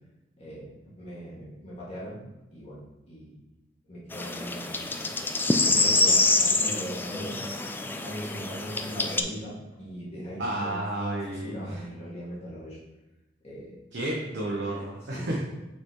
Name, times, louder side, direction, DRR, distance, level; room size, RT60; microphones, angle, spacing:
voice 1, 0.4-2.2 2.5-3.3 3.9-5.1 5.5-7.4 7.8-10.8 11.1-12.8 13.4-13.8 15.1-15.4, equal, 35° left, -7 dB, 2.1 m, -40 dB
sound 1, 4.1-9.2, left 2 dB, 10° left, 0.3 m, -26 dB
voice 2, 10.4-11.8 13.9-15.4, right 1 dB, 65° right, -3 dB, 0.9 m, -31 dB
5.8 x 5.6 x 3.1 m, 1.0 s
head